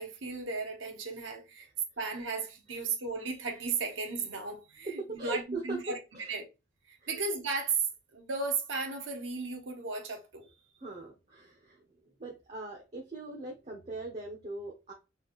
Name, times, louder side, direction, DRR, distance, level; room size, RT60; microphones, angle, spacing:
voice 1, 0.0-1.7 2.0-6.0 6.3-6.5 6.9-10.5, right 4 dB, 85° right, 1.1 m, -35 dB
voice 2, 4.8-6.3 7.0-7.2 10.8-14.9, right 2 dB, 35° right, 0.9 m, -40 dB
4.0 x 3.6 x 2.5 m
head